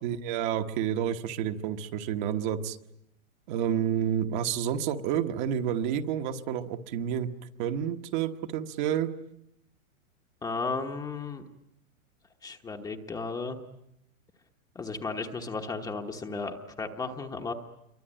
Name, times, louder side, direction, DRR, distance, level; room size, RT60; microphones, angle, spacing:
voice 1, 0.0-2.8 3.5-7.3 7.6-9.1, right 9 dB, 35° right, 6 dB, 1.2 m, -29 dB
voice 2, 10.4-11.4 12.4-13.6 14.7-17.5, left 4 dB, 10° left, 4 dB, 1.1 m, -34 dB
27.0 x 23.5 x 8.9 m, 0.81 s
supercardioid pair, 160°, 41 cm